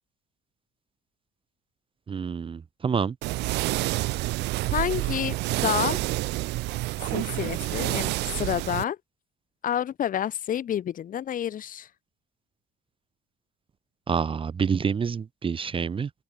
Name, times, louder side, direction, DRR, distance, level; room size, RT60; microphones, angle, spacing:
voice 1, 2.1-3.2 14.1-16.1, right 6 dB, 30° right, 1.2 m, -27 dB
sound 1, 3.2-8.8, right 20 dB, 85° right, 2.2 m, -28 dB
voice 2, 4.7-6.0 7.1-9.0 9.6-11.9, left 10 dB, 55° left, 3.3 m, -29 dB
cardioid pair, 110°, 17 cm